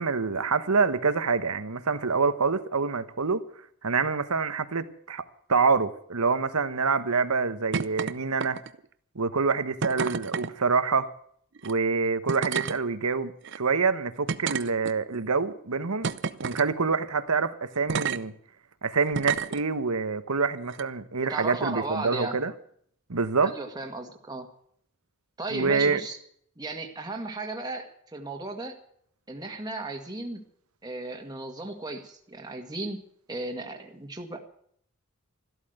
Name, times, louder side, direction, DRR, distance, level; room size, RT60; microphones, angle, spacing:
voice 1, 0.0-3.4 3.8-8.6 9.1-11.1 11.6-16.1 16.4-18.3 18.8-22.5 23.1-23.5 25.5-26.0, right 4 dB, 85° right, 1.2 m, -26 dB
sound 1, 7.7-8.1 8.4-8.8 9.8-10.5 11.6-11.7 12.3-12.8 13.4-13.6 14.3-15.2 16.0-16.7 17.9-18.2 19.1-19.6 20.7-20.8, right 5 dB, 55° right, 0.7 m, -30 dB
voice 2, 21.3-22.4 23.4-24.5 25.4-26.2 26.6-28.8 29.3-30.4 30.8-33.0 33.3-34.4, right 2 dB, 20° right, 1.8 m, -35 dB
14.0 x 12.5 x 8.0 m
head